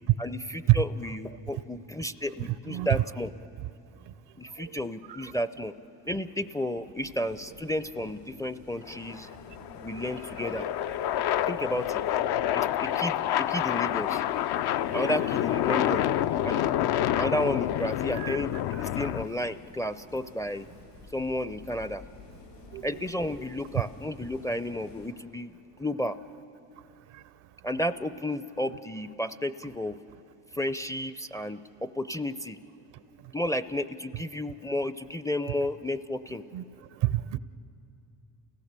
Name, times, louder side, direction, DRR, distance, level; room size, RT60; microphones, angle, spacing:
voice 1, 0.2-3.3 4.4-5.7 6.1-9.3 9.8-10.7 11.5-12.0 12.5-14.2 14.9-16.1 16.4-16.7 17.1-20.7 21.1-22.0 22.8-25.5 25.8-26.2 27.6-30.0 30.5-32.6 33.3-36.4, left 1 dB, 10° left, 12 dB, 0.4 m, -32 dB
voice 2, 2.4-3.0 5.1-5.2 18.2-18.4 22.7-22.8 36.5-36.6 37.0-37.4, right 16 dB, 75° right, 16 dB, 0.7 m, -26 dB
sound 1, 7.0-25.1, left 2 dB, 85° left, 6.5 m, -51 dB
sound 2, 8.8-19.3, left 11 dB, 60° left, 0.6 m, -28 dB
29.0 x 16.5 x 6.7 m, 2.8 s
supercardioid pair, 80°, 43 cm